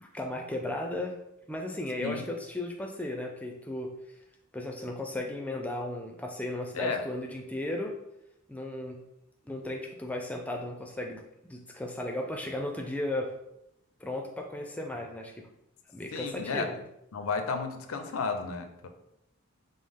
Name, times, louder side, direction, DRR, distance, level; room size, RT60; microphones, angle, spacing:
voice 1, 0.0-1.1 1.5-3.9 4.5-8.0 8.5-9.0 9.5-11.2 11.5-13.3 14.0-15.5 15.9-16.8, left 1 dB, 5° left, 2 dB, 0.4 m, -35 dB
voice 2, 16.1-16.7 17.1-18.9, left 4 dB, 90° left, 6 dB, 0.5 m, -32 dB
5.2 x 2.0 x 3.5 m, 0.81 s
head